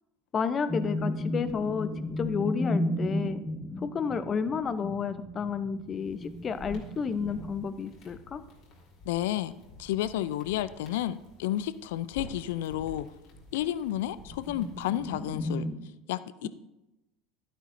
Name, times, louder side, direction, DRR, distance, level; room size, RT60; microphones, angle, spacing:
voice 1, 0.3-3.4 3.8-8.4 16.4-16.5, left 6 dB, 35° left, 12 dB, 0.7 m, -31 dB
sound 1, 0.7-8.2 8.5-8.8 9.2-10.7 13.9-15.8, left 1 dB, 10° left, 1.3 m, -34 dB
sound 2, 5.8-15.6, equal, 60° left, 3.0 m, -50 dB
voice 2, 9.0-9.5 9.8-13.1 13.5-15.7 16.1-16.5, left 13 dB, 75° left, 16 dB, 0.4 m, -31 dB
11.5 x 9.9 x 2.6 m, 0.97 s
hypercardioid pair, 80°, 0 cm